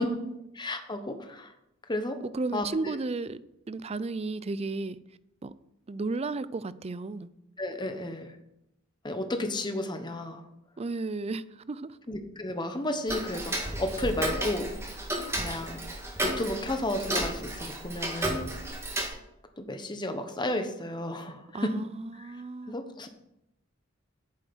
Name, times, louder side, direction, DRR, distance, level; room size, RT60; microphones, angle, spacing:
voice 1, 0.0-0.4 2.2-3.4 3.7-5.0 5.4-5.5 5.9-7.3 10.8-12.0 21.5-22.8, right 3 dB, 30° right, 16 dB, 0.4 m, -34 dB
voice 2, 0.5-1.5 1.9-2.2 2.5-3.0 7.6-8.3 9.0-10.4 12.1-14.7 15.4-15.8 16.2-18.5 19.6-21.7 22.2-22.3 22.7-23.1, left 1 dB, 20° left, 7 dB, 1.1 m, -33 dB
Tick-tock, 13.1-19.1, right 1 dB, 15° right, 1.9 m, -33 dB
9.1 x 7.1 x 6.2 m, 0.84 s
head